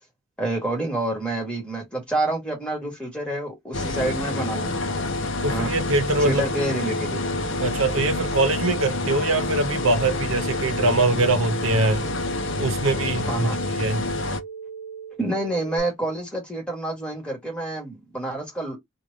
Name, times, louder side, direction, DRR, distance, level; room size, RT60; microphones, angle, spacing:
voice 1, 0.4-4.7 5.5-5.7 6.2-7.2 13.3-13.6 15.2-18.8, right 1 dB, 5° left, 1.6 m, -28 dB
sound 1, 3.7-14.4, left 2 dB, 65° left, 0.6 m, -28 dB
voice 2, 5.4-6.4 7.6-12.0 12.6-13.5 13.8-14.1, right 2 dB, 80° right, 0.8 m, -23 dB
sound 2, 5.8-15.8, right 6 dB, 35° right, 1.3 m, -39 dB
3.2 x 2.4 x 4.0 m
head